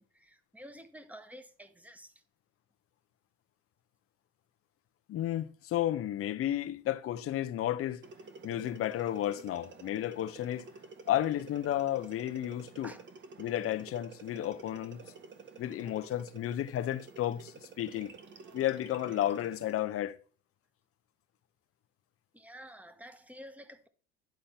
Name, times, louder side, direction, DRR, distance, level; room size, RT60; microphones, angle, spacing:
voice 1, 0.0-2.1 12.8-13.0 22.3-23.9, equal, 5° right, 1.4 m, -50 dB
voice 2, 5.1-8.0 8.4-10.7 11.1-12.9 13.4-15.0 15.6-18.1 18.5-20.2, left 12 dB, 50° left, 0.9 m, -32 dB
sound 1, 8.0-19.9, right 5 dB, 40° right, 1.7 m, -50 dB
10.5 x 3.9 x 5.8 m
supercardioid pair, 80°, 29 cm